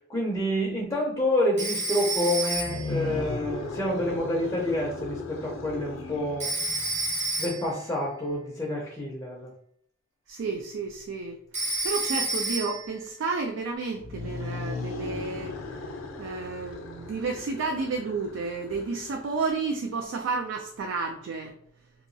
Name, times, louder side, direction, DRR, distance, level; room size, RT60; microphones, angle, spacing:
voice 1, 0.1-6.5 7.4-9.5, left 1 dB, 15° left, -3 dB, 0.5 m, -28 dB
Telephone, 1.6-3.0 6.4-7.8 11.5-12.9, right 2 dB, 35° right, 0.7 m, -30 dB
sound 1, 2.5-7.7 13.9-19.6, left 3 dB, 85° left, 0.5 m, -37 dB
voice 2, 10.3-15.5 16.2-21.5, right 4 dB, 70° right, 3 dB, 0.3 m, -31 dB
2.8 x 2.2 x 2.6 m, 0.65 s
head